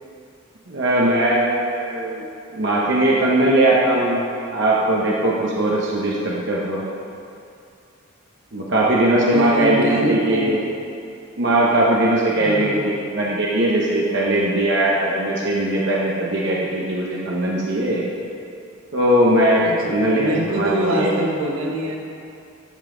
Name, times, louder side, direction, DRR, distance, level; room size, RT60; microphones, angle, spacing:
voice 1, 0.7-2.3 2.5-4.2 4.5-6.8 8.5-10.6 11.4-18.0 18.9-19.6 19.9-21.1, right 1 dB, 55° right, -4 dB, 0.9 m, -19 dB
voice 2, 9.3-10.6 12.4-12.9 19.6-22.0, right 1 dB, 75° right, -1 dB, 1.2 m, -24 dB
12.5 x 5.6 x 3.9 m, 2.6 s
head